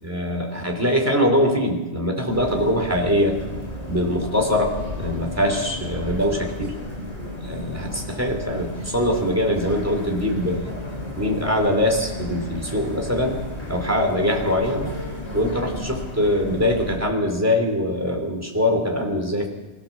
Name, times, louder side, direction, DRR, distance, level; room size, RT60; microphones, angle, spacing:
voice 1, 0.0-3.4 3.9-6.7 7.4-10.7 11.2-13.4 13.7-14.9 15.3-19.5, left 1 dB, 15° right, 2 dB, 3.5 m, -23 dB
sound 1, 2.3-17.0, left 1 dB, 70° left, 5.7 m, -33 dB
23.0 x 16.0 x 7.4 m, 1.1 s
omnidirectional pair, 1.2 m